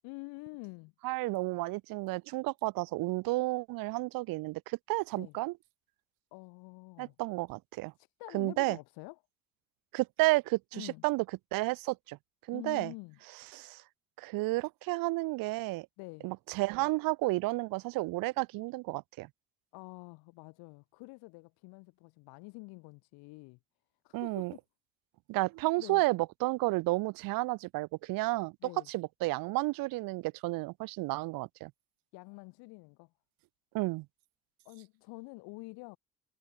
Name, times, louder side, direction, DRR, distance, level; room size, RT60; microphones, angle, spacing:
voice 1, 0.0-0.9 5.1-5.4 6.3-7.1 8.0-9.2 10.7-11.0 12.5-13.2 16.0-16.3 19.7-23.6 24.0-24.6 25.8-26.0 28.6-28.9 32.1-33.1 34.6-36.0, left 27 dB, 80° left, 1.4 m, -47 dB
voice 2, 1.0-5.5 7.0-7.9 8.3-8.8 9.9-11.2 11.5-12.2 12.5-12.9 13.5-13.8 14.2-15.9 16.2-19.3 24.1-24.5 25.3-28.5 28.9-31.7 33.7-34.1, right 21 dB, 65° right, 0.6 m, -32 dB
supercardioid pair, 90°, 37 cm